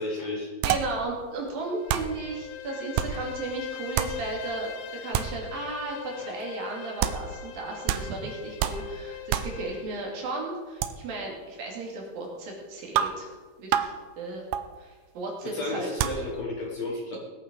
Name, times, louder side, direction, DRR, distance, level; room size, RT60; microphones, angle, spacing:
voice 1, 0.0-0.5 6.2-6.3 15.4-17.2, left 2 dB, 50° left, -1 dB, 2.6 m, -32 dB
voice 2, 0.6-4.7 5.0-13.3 13.6-14.5 14.8-15.9, right 2 dB, 65° right, -1 dB, 4.3 m, -35 dB
sound 1, 0.6-1.1 1.5-1.6 1.9-2.3 3.0-3.3 4.0-4.3 5.1-5.5 7.0-7.3 7.9-8.3 8.6-9.0 9.3-9.6 10.8-10.9 13.0-13.3 13.7-14.0 14.5-14.7 16.0-16.3, right 10 dB, 80° right, 2.0 m, -28 dB
Bowed string instrument, 1.7-10.0, left 10 dB, 90° left, 3.0 m, -41 dB
20.0 x 8.7 x 5.3 m, 1.3 s
omnidirectional pair, 4.6 m